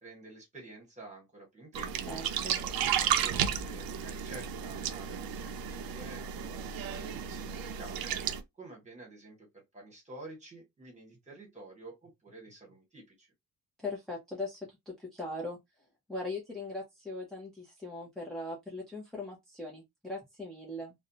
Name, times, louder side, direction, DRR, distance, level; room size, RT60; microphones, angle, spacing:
voice 1, 0.0-2.1 2.8-8.1 8.6-13.3, right 2 dB, 20° right, 1.3 m, -50 dB
sound 1, 1.7-8.4, right 8 dB, 90° right, 0.5 m, -33 dB
voice 2, 2.1-2.6 13.8-15.6 16.1-20.9, left 2 dB, ahead, 0.5 m, -40 dB
2.5 x 2.1 x 2.6 m
wide cardioid pair, 160°, 35 cm